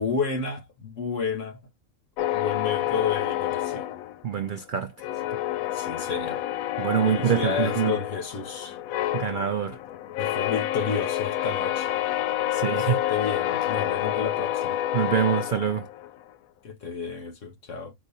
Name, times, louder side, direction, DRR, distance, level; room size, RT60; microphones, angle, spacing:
voice 1, 0.0-1.6 2.3-3.8 5.7-6.4 7.0-8.8 10.2-11.9 12.9-14.8 16.6-17.9, left 5 dB, 60° left, 1.7 m, -31 dB
sound 1, 2.2-4.6 5.0-16.2, left 12 dB, 85° left, 1.0 m, -28 dB
voice 2, 4.2-4.9 6.8-8.0 9.1-9.8 12.5-13.0 14.9-15.9, right 8 dB, 75° right, 0.4 m, -25 dB
4.8 x 2.5 x 4.1 m
omnidirectional pair, 1.4 m